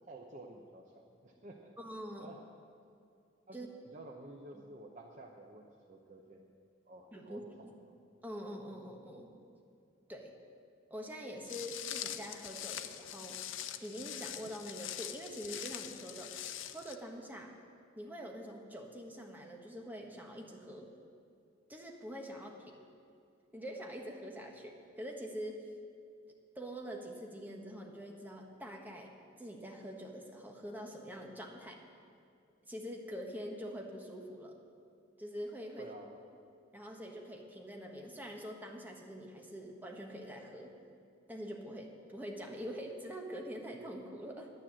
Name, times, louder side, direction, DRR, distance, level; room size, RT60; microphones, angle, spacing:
voice 1, 0.0-1.8 2.2-2.4 3.5-6.5 6.9-8.0 35.8-36.2, right 2 dB, 40° right, 0 dB, 0.8 m, -52 dB
voice 2, 1.8-2.3 3.5-3.7 7.1-7.4 8.2-9.3 10.1-10.3 10.9-13.4 13.8-16.3 16.7-17.5 17.9-20.9 21.7-22.9 23.5-25.7 26.5-29.1 29.4-31.8 32.6-34.6 35.2-35.9 36.7-40.7 41.3-44.5, equal, 10° right, 1 dB, 1.3 m, -45 dB
Walk footsteps, 11.4-16.9, left 11 dB, 80° left, 0.6 m, -43 dB
10.5 x 9.9 x 7.6 m, 2.4 s
head